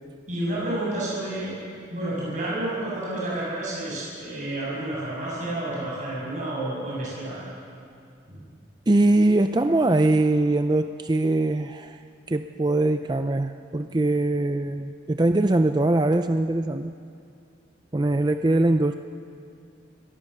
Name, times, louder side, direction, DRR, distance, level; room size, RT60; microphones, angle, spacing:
voice 1, 0.3-7.4 8.3-8.4, right 1 dB, 40° right, -6 dB, 6.8 m, -30 dB
voice 2, 8.9-12.0 12.3-16.9 17.9-18.9, right 2 dB, 20° right, 8 dB, 0.4 m, -22 dB
23.5 x 19.0 x 6.7 m, 2.4 s
head